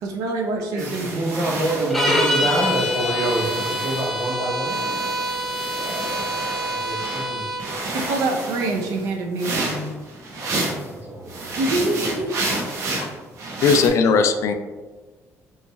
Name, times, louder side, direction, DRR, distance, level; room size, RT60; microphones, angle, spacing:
voice 1, 0.0-1.3 7.8-9.9 11.6-12.3, right 2 dB, 85° right, 2 dB, 0.7 m, -25 dB
voice 2, 0.7-4.7 6.5-7.7 10.4-11.6, right 1 dB, 45° right, -10 dB, 1.4 m, -27 dB
sound 1, 0.8-4.3 4.7-7.3 7.6-10.9 11.3-13.9, right 2 dB, 60° right, 0.9 m, -30 dB
sound 2, 1.9-7.7, equal, 5° left, 0.7 m, -25 dB
voice 3, 13.6-14.5, left 5 dB, 60° left, 7 dB, 0.4 m, -17 dB
5.4 x 3.1 x 2.3 m, 1.3 s
cardioid pair, 120°, 6 cm